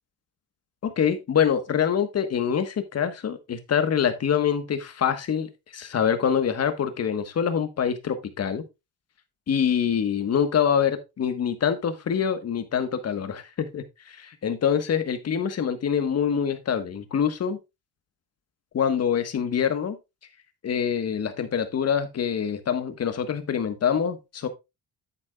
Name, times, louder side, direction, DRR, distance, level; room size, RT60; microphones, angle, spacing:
voice 1, 0.8-8.6 9.5-17.6 18.7-20.0 20.6-24.5, left 8 dB, 40° left, 1.4 m, -25 dB
9.8 x 8.3 x 2.4 m
cardioid pair, 115°, 40 cm